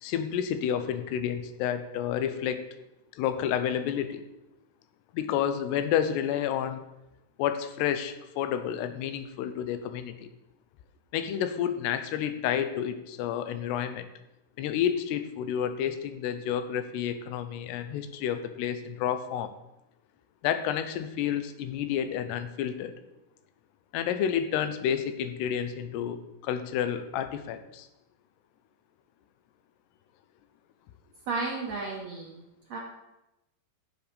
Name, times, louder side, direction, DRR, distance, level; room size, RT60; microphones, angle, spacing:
voice 1, 0.0-2.7 3.1-4.3 5.1-6.8 7.4-10.3 11.1-14.1 14.6-19.5 20.4-22.9 23.9-27.9, left 9 dB, 85° left, 10 dB, 2.8 m, -30 dB
voice 2, 31.3-32.4 32.7-32.8, right 3 dB, 60° right, -2 dB, 1.9 m, -33 dB
16.0 x 7.9 x 3.4 m, 0.92 s
omnidirectional pair, 4.8 m